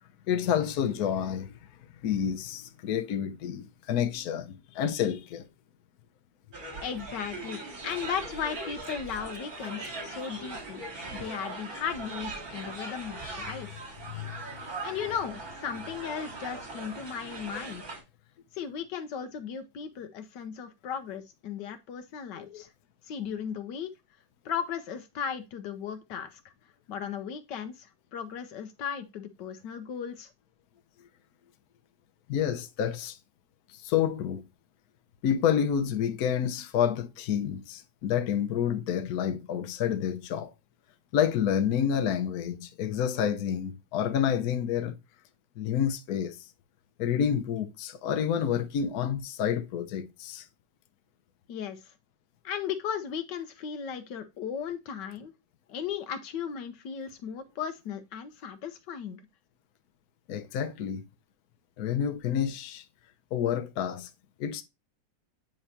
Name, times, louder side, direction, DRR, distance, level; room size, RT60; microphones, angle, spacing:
voice 1, 0.3-1.6 2.0-5.4 14.1-14.4 22.4-22.6 32.3-33.2 33.7-34.4 35.2-40.5 41.1-45.0 45.6-46.5 47.0-50.5 60.3-61.0 61.8-62.8 63.3-64.1 64.4-64.6, left 9 dB, 65° left, 1.2 m, -29 dB
sound 1, 6.5-18.0, right 2 dB, 55° right, 3.2 m, -40 dB
voice 2, 6.8-13.8 14.8-17.8 18.5-22.7 23.1-23.9 24.4-26.4 26.9-30.3 51.5-51.8 52.4-55.3 55.7-59.2, left 7 dB, 80° left, 1.4 m, -36 dB
9.1 x 3.1 x 4.2 m
omnidirectional pair, 1.9 m